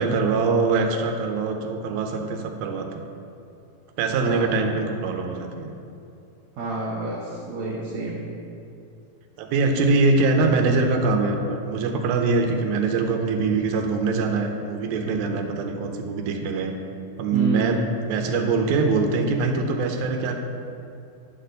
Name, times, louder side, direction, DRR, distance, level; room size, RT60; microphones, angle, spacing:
voice 1, 0.0-2.9 4.0-5.7 9.4-16.7 17.2-20.4, right 3 dB, 85° right, 4 dB, 2.5 m, -23 dB
voice 2, 4.2-4.6 6.6-8.2 17.3-17.7, right 2 dB, 65° right, -6 dB, 2.2 m, -29 dB
11.0 x 4.2 x 6.4 m, 2.6 s
omnidirectional pair, 4.1 m